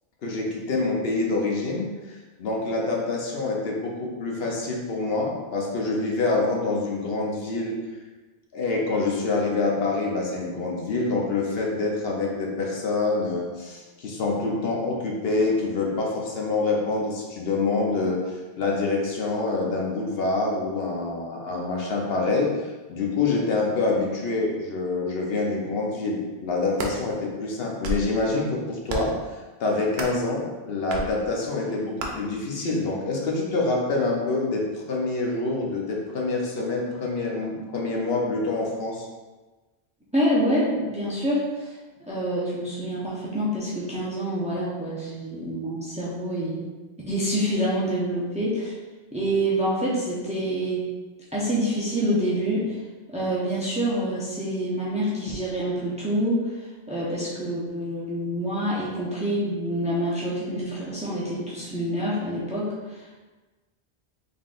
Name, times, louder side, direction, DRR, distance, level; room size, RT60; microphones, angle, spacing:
voice 1, 0.2-7.8 8.5-29.1 29.6-39.0, left 3 dB, 70° left, -1 dB, 0.9 m, -26 dB
sound 1, 26.5-27.0 27.6-28.1 28.9-29.2 29.9-30.2 30.9-31.1 32.0-32.1, right 2 dB, 75° right, 0.8 m, -31 dB
voice 2, 40.1-46.7 47.1-48.7 49.1-50.8 51.3-52.8 53.1-63.2, equal, 10° right, -7 dB, 0.6 m, -27 dB
3.8 x 3.5 x 2.4 m, 1.2 s
omnidirectional pair, 1.1 m